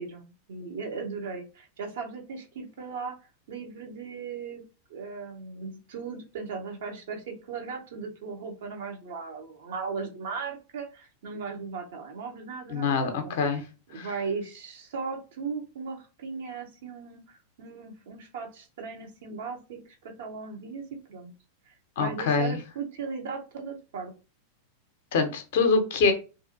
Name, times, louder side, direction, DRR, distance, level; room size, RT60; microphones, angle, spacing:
voice 1, 0.0-3.1 3.5-4.6 4.9-13.3 13.9-20.8 21.1-21.3 21.7-24.1, right 5 dB, 55° right, 3 dB, 0.7 m, -37 dB
voice 2, 12.7-13.6 13.9-14.1 22.0-22.6 25.1-26.1, left 4 dB, 55° left, 6 dB, 0.6 m, -24 dB
2.6 x 2.4 x 2.6 m, 0.32 s
figure-of-eight pair, 90°, 0 cm